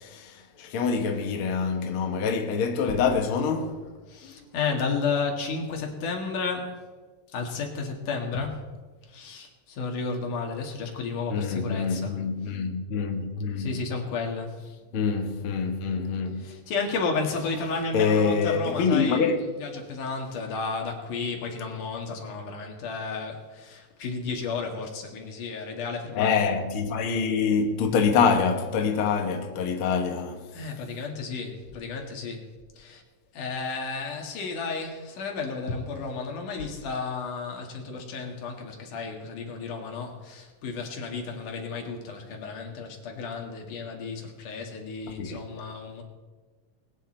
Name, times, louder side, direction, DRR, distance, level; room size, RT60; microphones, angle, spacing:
voice 1, 0.0-3.9 4.2-4.5 11.3-13.8 14.9-16.5 17.9-19.4 26.2-30.5 45.2-45.4, left 5 dB, 55° left, 1.8 m, -25 dB
voice 2, 4.1-6.8 7.3-8.6 9.1-12.2 13.6-14.6 16.4-19.3 19.6-26.4 30.5-32.5 32.8-33.0 33.3-46.0, left 4 dB, 80° left, 3.5 m, -32 dB
22.0 x 9.3 x 4.4 m
omnidirectional pair, 3.5 m